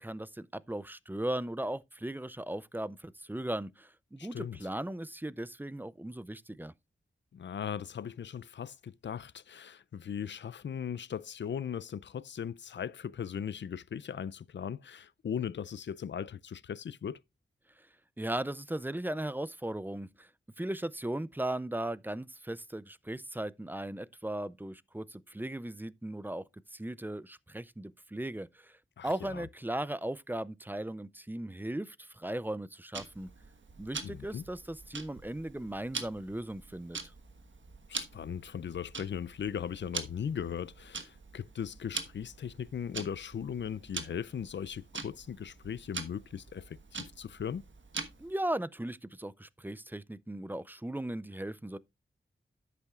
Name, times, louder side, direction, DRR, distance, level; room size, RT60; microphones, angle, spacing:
voice 1, 0.0-6.7 18.2-20.3 20.6-26.4 26.7-28.8 29.0-33.3 33.8-37.0 48.2-51.8, right 1 dB, 10° right, 0.4 m, -37 dB
voice 2, 4.2-4.6 7.3-17.2 29.0-29.5 34.0-34.4 37.9-47.6, left 8 dB, 60° left, 0.4 m, -38 dB
Tick-tock, 32.9-48.4, right 4 dB, 65° right, 1.3 m, -44 dB
10.5 x 8.3 x 2.4 m
wide cardioid pair, 80°, 21 cm